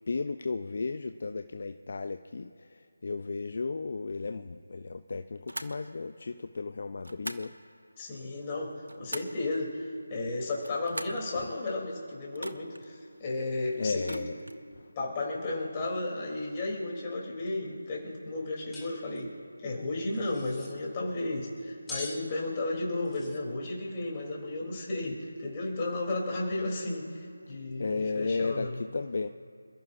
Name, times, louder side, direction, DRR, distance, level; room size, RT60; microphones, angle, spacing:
voice 1, 0.1-7.5 11.3-11.5 13.8-14.4 14.8-14.9 27.5-29.3, left 4 dB, 50° left, 9 dB, 0.6 m, -34 dB
sound 1, 5.5-5.8 7.0-7.5 8.6-9.4 10.5-11.3 12.3-12.9 14.0-14.6, right 1 dB, 80° right, 1.1 m, -42 dB
voice 2, 8.0-14.2 14.9-19.3 19.6-28.8, left 2 dB, 20° left, -3 dB, 3.4 m, -33 dB
sound 2, 18.7-18.9 19.1-19.2 20.1-20.7 21.9-22.2 23.0-23.4, left 2 dB, 5° left, 1.9 m, -42 dB
27.5 x 14.5 x 2.7 m, 2.4 s
figure-of-eight pair, 160°, 0 cm